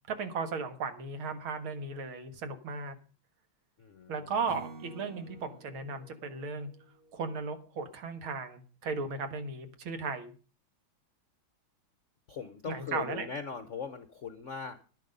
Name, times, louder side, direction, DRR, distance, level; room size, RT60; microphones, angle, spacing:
voice 1, 0.2-3.0 4.1-6.7 7.1-10.3 12.7-13.3, right 4 dB, 75° right, 9 dB, 2.4 m, -36 dB
voice 2, 3.8-4.3 12.3-14.8, left 6 dB, 55° left, 11 dB, 0.9 m, -40 dB
Acoustic guitar / Strum, 4.5-7.8, right 3 dB, 45° right, 1.9 m, -51 dB
11.0 x 10.5 x 5.3 m, 0.37 s
omnidirectional pair, 2.3 m